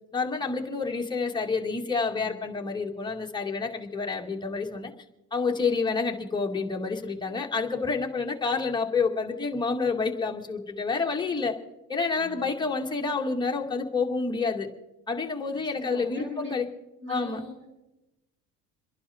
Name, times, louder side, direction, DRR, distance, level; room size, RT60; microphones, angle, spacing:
voice 1, 0.1-4.9 5.3-11.5 11.9-14.7 15.1-16.7 17.1-17.4, left 4 dB, 15° left, 1 dB, 2.1 m, -28 dB
voice 2, 2.1-2.5 12.2-12.6 15.7-16.5 17.0-17.7, left 2 dB, 40° right, 0 dB, 7.4 m, -42 dB
28.0 x 11.0 x 4.4 m, 0.98 s
supercardioid pair, 100°, 32 cm